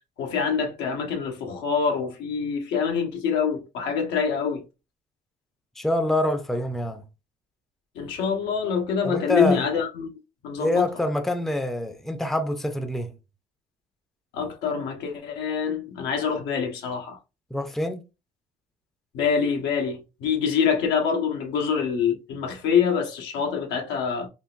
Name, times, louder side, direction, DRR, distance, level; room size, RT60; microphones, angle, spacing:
voice 1, 0.2-4.6 7.9-10.1 10.4-10.9 14.3-17.2 19.1-24.3, left 6 dB, 90° left, 1.0 m, -25 dB
voice 2, 5.8-7.0 9.0-9.6 10.6-13.1 17.5-18.0, left 1 dB, ahead, 0.5 m, -26 dB
3.8 x 2.4 x 2.4 m
cardioid pair, 110°, 17 cm